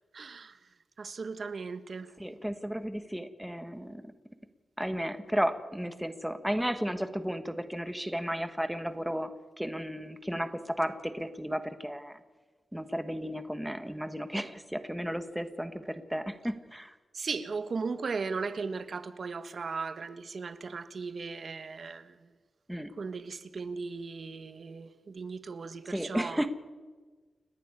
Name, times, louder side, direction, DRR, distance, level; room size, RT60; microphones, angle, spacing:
voice 1, 0.1-0.6 1.0-2.1 17.1-22.2 23.0-26.5, right 4 dB, 50° right, 1.4 m, -37 dB
voice 2, 2.2-4.1 4.8-9.3 9.6-12.2 12.7-16.9 22.7-22.9 25.9-26.5, equal, 5° right, 1.4 m, -33 dB
29.5 x 11.5 x 9.6 m
wide cardioid pair, 120°, 0 cm